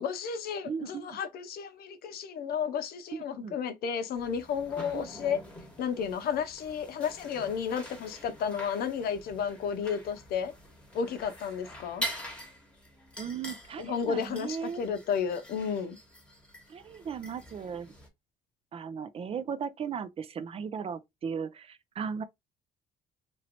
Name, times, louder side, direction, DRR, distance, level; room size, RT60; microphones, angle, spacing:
voice 1, 0.0-5.4 5.8-10.5 10.9-12.1 13.8-16.0, left 7 dB, 65° left, 0.7 m, -32 dB
voice 2, 0.6-1.2 3.1-3.6 4.9-5.1 13.2-14.9 16.7-17.9 18.7-22.2, right 6 dB, 35° right, 0.4 m, -37 dB
sound 1, 4.1-18.1, equal, 5° left, 1.1 m, -45 dB
3.0 x 2.6 x 2.8 m
cardioid pair, 110°, 17 cm